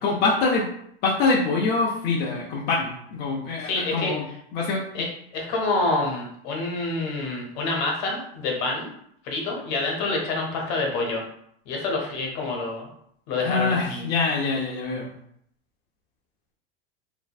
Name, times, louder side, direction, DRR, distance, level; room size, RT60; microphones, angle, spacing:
voice 1, 0.0-0.7 1.0-4.2 4.5-4.8 13.4-15.1, left 3 dB, 35° left, -3 dB, 0.5 m, -24 dB
voice 2, 3.6-4.1 4.9-5.1 5.3-8.9 9.2-11.2 11.7-12.9 13.3-14.1, left 3 dB, 55° left, 0 dB, 1.0 m, -27 dB
3.0 x 2.6 x 2.3 m, 0.70 s
supercardioid pair, 140°, 30 cm